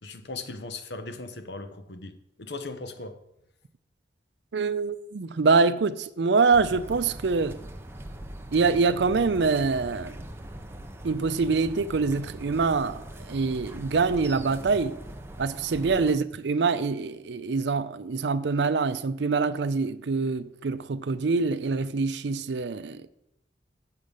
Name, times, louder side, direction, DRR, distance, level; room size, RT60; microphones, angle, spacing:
voice 1, 0.0-3.2 16.0-16.1, left 3 dB, 65° left, 0.9 m, -38 dB
voice 2, 4.5-7.6 8.5-10.2 11.0-15.0 15.4-23.0, right 4 dB, 70° right, 0.5 m, -25 dB
sound 1, 6.5-16.1, right 1 dB, 15° right, 0.6 m, -41 dB
7.5 x 7.1 x 6.4 m
head